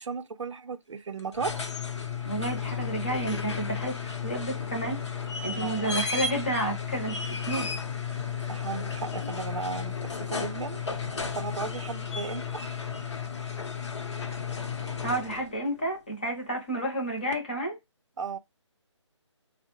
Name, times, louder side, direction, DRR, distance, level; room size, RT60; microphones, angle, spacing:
voice 1, 0.0-1.6 5.5-5.9 8.5-10.8 11.1-12.6 18.2-18.4, right 5 dB, 75° right, 0.5 m, -35 dB
sound 1, 1.2-15.6 17.3-17.4, left 6 dB, 65° left, 0.7 m, -33 dB
voice 2, 2.2-5.0 5.4-7.7 15.0-17.8, right 1 dB, 20° left, 0.6 m, -31 dB
3.5 x 2.0 x 2.9 m
hypercardioid pair, 175°, 16 cm